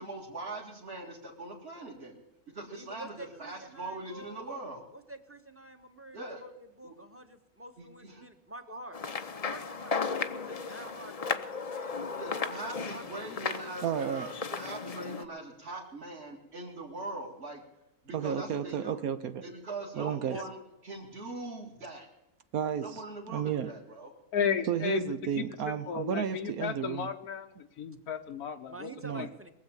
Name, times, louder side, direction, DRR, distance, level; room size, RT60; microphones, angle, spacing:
voice 1, 0.0-2.2 2.5-4.8 6.1-6.4 6.8-7.0 7.8-8.3 12.2-17.6 18.0-19.0 19.4-22.1 22.8-24.1, right 2 dB, 45° right, -4 dB, 2.4 m, -41 dB
voice 2, 2.7-4.6 4.9-9.0 9.4-10.0 10.3-13.1 13.4-13.8 20.3-20.4 28.7-29.5, right 1 dB, 10° right, 7 dB, 1.1 m, -48 dB
sound 1, 8.9-15.2, left 5 dB, 40° left, 0.6 m, -35 dB
voice 3, 13.8-14.3 18.1-19.4 20.0-20.4 22.5-23.0 23.3-23.7 24.7-27.1 29.0-29.3, right 8 dB, 75° right, 10 dB, 1.2 m, -32 dB
voice 4, 24.3-25.1 25.9-27.5 27.8-28.9 29.1-29.3, left 7 dB, 90° left, 4 dB, 1.4 m, -33 dB
22.0 x 7.7 x 7.1 m, 0.97 s
omnidirectional pair, 1.6 m